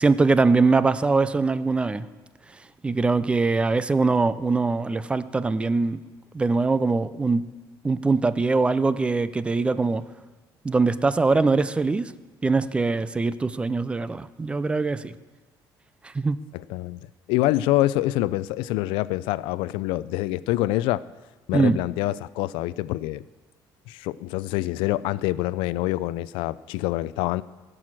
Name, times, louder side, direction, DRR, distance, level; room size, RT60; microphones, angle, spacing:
voice 1, 0.0-2.1 2.8-6.0 6.3-7.4 7.8-10.0 10.6-12.1 12.4-15.1 16.1-16.4 21.5-21.8, right 3 dB, 15° right, 15 dB, 0.4 m, -22 dB
voice 2, 16.5-21.0 21.5-23.2 23.9-27.4, left 16 dB, 90° left, 18 dB, 0.4 m, -26 dB
16.0 x 6.2 x 7.5 m, 1.3 s
cardioid pair, 150°, 8 cm